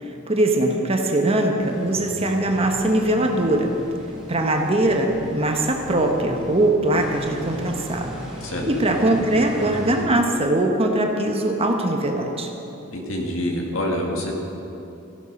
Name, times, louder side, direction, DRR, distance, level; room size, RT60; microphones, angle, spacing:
voice 1, 0.3-3.7 4.3-8.1 8.7-12.5, right 1 dB, 30° right, 3 dB, 1.1 m, -21 dB
sound 1, 1.6-10.0, equal, 5° right, 3.1 m, -38 dB
voice 2, 12.9-14.3, left 1 dB, 70° left, 0 dB, 2.1 m, -26 dB
15.0 x 11.5 x 5.3 m, 2.9 s
head